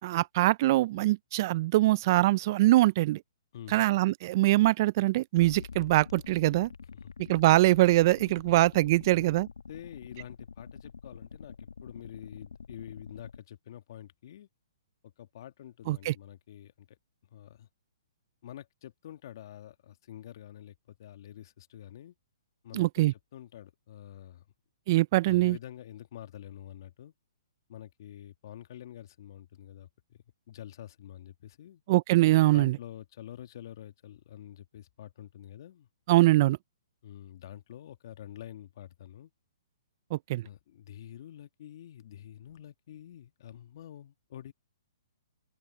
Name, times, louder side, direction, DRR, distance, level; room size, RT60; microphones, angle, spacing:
voice 1, 0.0-3.2 3.7-6.7 7.3-9.5 15.9-16.1 22.7-23.1 24.9-25.6 31.9-32.8 36.1-36.6 40.1-40.5, right 17 dB, 45° right, 0.3 m, -23 dB
sound 1, 5.4-13.4, left 5 dB, 85° left, 1.3 m, -47 dB
voice 2, 9.7-14.5 15.0-16.9 17.3-17.7 18.4-20.7 21.0-22.2 22.6-24.4 25.2-27.1 27.7-31.8 32.5-35.9 37.0-39.3 40.4-44.5, left 11 dB, 55° left, 1.9 m, -47 dB
open air
hypercardioid pair, 135°, 3 cm